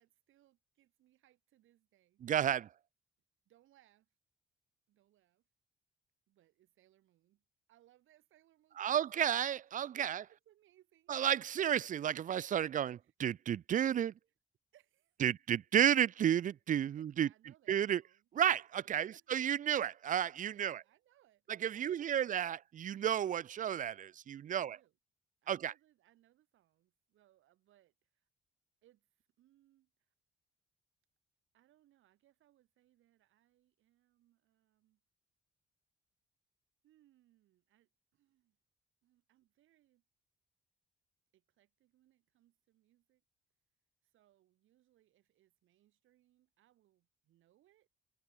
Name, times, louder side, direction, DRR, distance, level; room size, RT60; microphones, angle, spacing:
voice 1, 0.0-2.3 3.4-4.1 4.9-5.5 6.3-9.4 10.3-11.1 13.0-13.1 14.7-15.3 16.9-18.3 18.9-19.8 20.5-22.3 24.5-25.0 25.4-28.3 28.8-30.1 31.5-35.0 36.8-38.6 39.0-40.0 41.3-43.2 44.0-47.9, right 14 dB, 80° right, 5.1 m, -70 dB
voice 2, 2.2-2.7 8.8-10.2 11.1-14.1 15.2-17.3 17.7-18.0 18.4-20.8 21.6-24.8 25.5-25.7, right 10 dB, 40° right, 0.4 m, -32 dB
cardioid pair, 90°, 20 cm